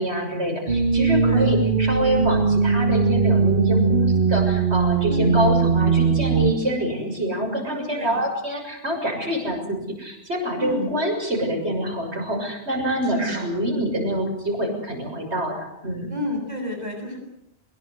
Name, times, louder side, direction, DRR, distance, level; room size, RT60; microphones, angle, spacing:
voice 1, 0.0-16.1, equal, 85° right, 2 dB, 7.1 m, -26 dB
sound 1, 0.7-6.5, right 5 dB, 55° right, 1.9 m, -20 dB
voice 2, 5.1-5.4 7.9-8.2 10.6-10.9 13.0-13.5 16.1-17.2, left 1 dB, 40° right, 3 dB, 7.3 m, -30 dB
23.5 x 21.5 x 8.1 m, 0.78 s
omnidirectional pair, 1.1 m